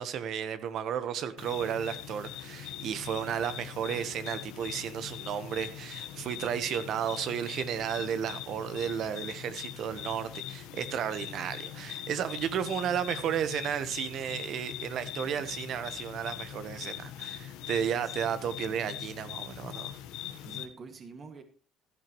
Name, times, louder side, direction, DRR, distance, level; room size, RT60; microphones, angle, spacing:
voice 1, 0.0-19.9, right 8 dB, 65° right, 1.2 m, -33 dB
sound 1, 1.4-20.6, left 12 dB, 85° left, 1.3 m, -42 dB
voice 2, 18.0-18.4 20.4-21.4, right 4 dB, 45° right, 2.1 m, -47 dB
15.5 x 11.0 x 3.2 m
supercardioid pair, 85°, 0 cm